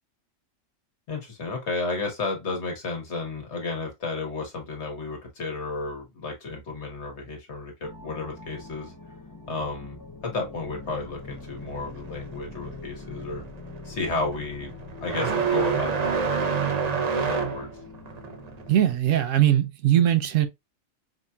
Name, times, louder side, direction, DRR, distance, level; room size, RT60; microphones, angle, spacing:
voice 1, 1.1-8.9 9.5-13.4 13.8-14.7 15.0-17.7, left 3 dB, 60° left, 1.6 m, -32 dB
sound 1, 7.8-19.0, left 3 dB, 25° left, 0.4 m, -44 dB
sound 2, 10.8-18.9, right 6 dB, 50° right, 0.4 m, -29 dB
voice 2, 18.7-20.5, right 11 dB, 75° right, 1.0 m, -20 dB
4.9 x 2.8 x 2.3 m
omnidirectional pair, 1.4 m